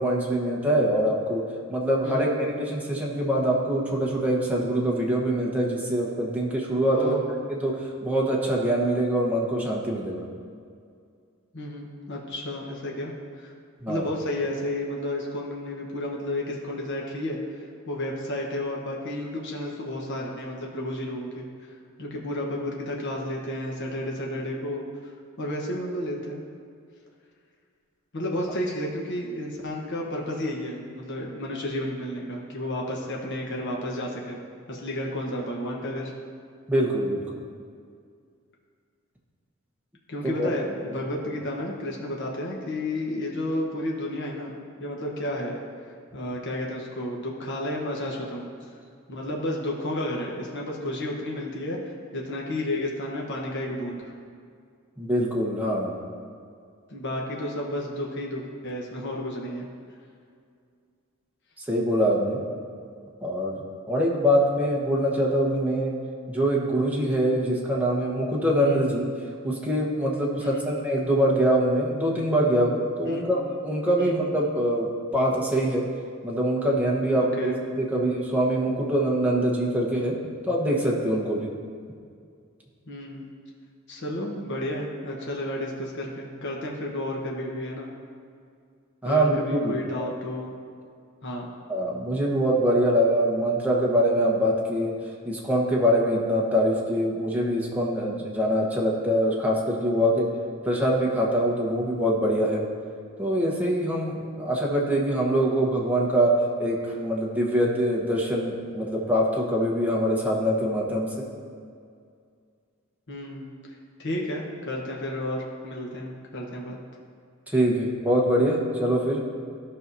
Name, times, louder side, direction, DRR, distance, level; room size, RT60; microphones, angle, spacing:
voice 1, 0.0-1.4 1.7-7.1 7.6-10.3 13.8-14.0 36.7-37.2 40.4-40.5 55.0-55.9 61.7-62.4 63.2-65.9 66.3-69.0 69.4-75.8 76.2-80.2 80.4-81.5 89.0-90.1 91.7-94.9 95.2-100.3 100.6-102.7 103.2-111.1 117.5-119.2, equal, 10° right, -3 dB, 1.2 m, -24 dB
voice 2, 6.9-7.3 11.5-13.5 13.9-17.4 17.9-21.5 22.0-24.8 25.4-26.4 28.1-34.4 34.7-36.1 40.1-45.5 46.1-48.4 49.1-54.1 56.9-59.7 68.7-68.9 70.4-70.6 73.0-73.3 74.0-74.2 77.2-77.6 82.9-83.3 83.9-87.9 89.0-90.5 91.2-91.5 113.1-113.5 114.0-116.8, left 1 dB, 60° left, -1 dB, 1.1 m, -32 dB
13.5 x 5.7 x 2.7 m, 2.2 s
head